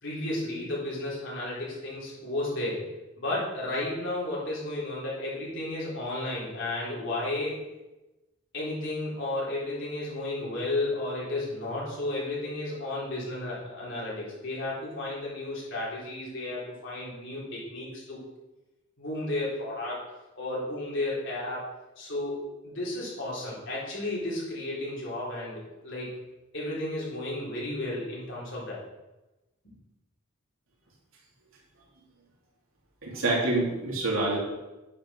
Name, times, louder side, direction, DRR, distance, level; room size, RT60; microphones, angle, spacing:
voice 1, 0.0-2.8 3.2-7.6 8.5-18.2 19.0-20.0 20.4-21.6 22.0-26.2 26.5-28.8, left 2 dB, 60° left, -5 dB, 4.0 m, -33 dB
voice 2, 33.0-34.4, right 2 dB, 70° right, -3 dB, 3.3 m, -26 dB
10.0 x 6.0 x 6.4 m, 1.0 s
head